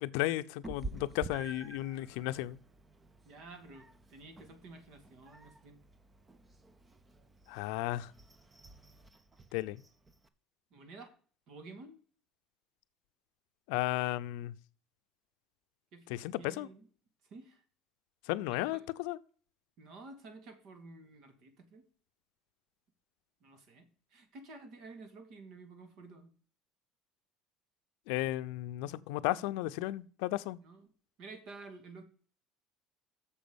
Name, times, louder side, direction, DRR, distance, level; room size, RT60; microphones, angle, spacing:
voice 1, 0.0-2.6 7.5-8.1 9.5-9.8 13.7-14.5 16.1-16.7 18.3-19.2 28.1-30.6, left 17 dB, 85° left, 0.5 m, -34 dB
Meow, 0.6-10.3, right 2 dB, 15° right, 0.7 m, -50 dB
voice 2, 3.2-5.8 10.7-11.1 11.5-12.0 15.9-16.1 16.4-16.9 17.3-17.6 18.3-18.8 19.8-21.8 23.4-26.3 30.6-30.9 31.2-32.0, right 3 dB, 55° right, 2.1 m, -51 dB
7.0 x 5.1 x 7.0 m
cardioid pair, 145°, 0 cm